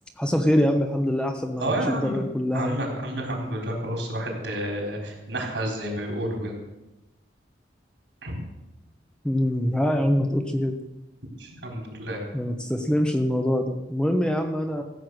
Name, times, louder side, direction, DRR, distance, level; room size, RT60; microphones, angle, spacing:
voice 1, 0.2-2.8 9.2-10.8 12.3-14.8, equal, 5° left, 5 dB, 0.9 m, -24 dB
voice 2, 1.6-2.2 2.5-6.6 8.2-8.3 11.4-12.2, right 1 dB, 80° right, 0 dB, 4.0 m, -30 dB
14.5 x 8.1 x 6.3 m, 0.96 s
head